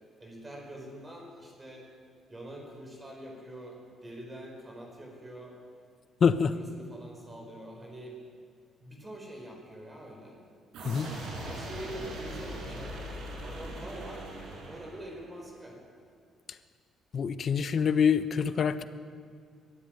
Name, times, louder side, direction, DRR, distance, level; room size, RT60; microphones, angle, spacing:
voice 1, 0.2-1.9 2.3-5.6 6.3-8.2 8.8-10.4 11.4-13.1 13.4-14.2 14.7-15.8, right 1 dB, 15° right, 0 dB, 5.0 m, -45 dB
voice 2, 6.2-6.5 10.8-11.1 17.1-18.8, left 6 dB, 45° left, 12 dB, 1.0 m, -25 dB
sound 1, 10.7-15.4, right 1 dB, 80° right, 6.9 m, -40 dB
22.0 x 15.0 x 9.2 m, 2.1 s
cardioid pair, 135°, 0 cm